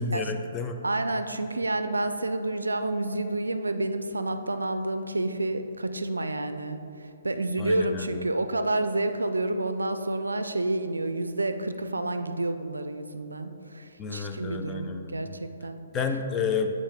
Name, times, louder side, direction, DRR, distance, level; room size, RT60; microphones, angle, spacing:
voice 1, 0.0-0.8 7.6-8.2 14.0-15.3 15.9-16.7, left 5 dB, 20° left, 5 dB, 0.5 m, -30 dB
voice 2, 0.8-15.8, right 2 dB, 80° right, 9 dB, 0.4 m, -29 dB
8.1 x 4.3 x 3.6 m, 2.7 s
figure-of-eight pair, 125°, 0 cm